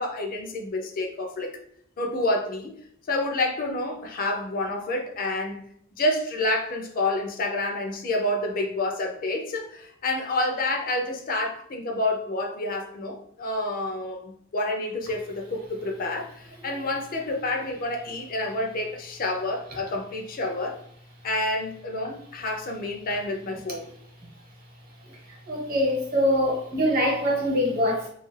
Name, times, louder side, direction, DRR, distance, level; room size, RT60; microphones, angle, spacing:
voice 1, 0.0-1.5 2.0-2.7 3.1-5.6 6.0-20.8 21.2-23.9, left 2 dB, 45° left, 0.4 m, -28 dB
voice 2, 25.5-28.1, equal, 45° right, 0.9 m, -23 dB
2.6 x 2.4 x 3.1 m
head